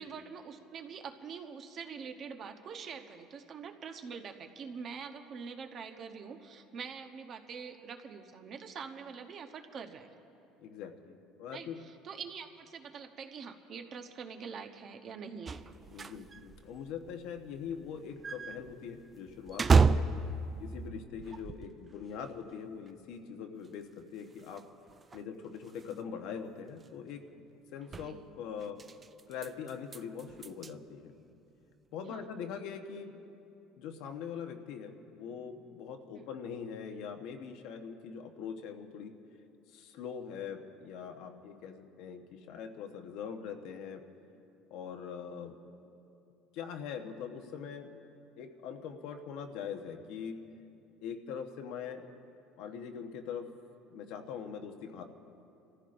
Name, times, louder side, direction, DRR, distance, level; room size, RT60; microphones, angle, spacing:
voice 1, 0.0-10.1 11.5-11.7 12.0-15.7 28.0-28.3 32.1-32.2 36.2-36.3, right 6 dB, 40° right, 6 dB, 0.9 m, -44 dB
voice 2, 10.6-11.8 15.9-20.1 20.6-24.7 25.1-27.4 27.7-28.8 29.3-31.1 31.9-33.1 33.8-39.1 39.7-44.0 44.7-45.5 46.5-48.0 48.4-50.4 51.0-52.1 52.6-53.5 53.9-55.0, left 7 dB, 70° left, 5 dB, 1.0 m, -42 dB
sound 1, 15.5-21.9 22.2-22.3 22.9-23.0 23.6-23.7 24.0-24.1 24.3-24.6 24.9-26.0 26.7-26.9 27.8-28.1 28.6-30.7, right 4 dB, 25° right, 0.3 m, -32 dB
30.0 x 14.5 x 2.6 m, 2.7 s
cardioid pair, 140°, 0 cm